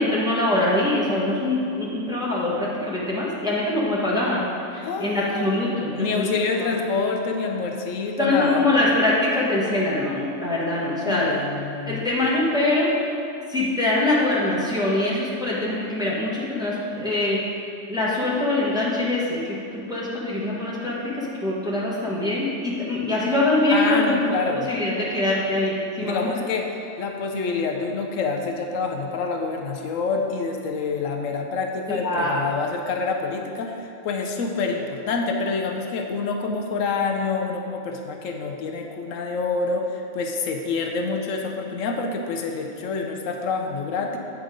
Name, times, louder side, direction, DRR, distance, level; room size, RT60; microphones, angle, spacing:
voice 1, 0.0-4.4 5.0-6.3 8.2-11.3 11.9-12.9 13.5-17.4 17.9-20.9 21.4-24.1 24.7-26.3 31.9-32.4, left 2 dB, 5° right, -7 dB, 1.2 m, -23 dB
voice 2, 4.7-5.5 5.9-8.7 11.0-12.1 23.7-24.7 26.0-44.2, left 4 dB, 80° left, 3 dB, 1.1 m, -27 dB
7.8 x 4.8 x 5.0 m, 2.6 s
omnidirectional pair, 1.3 m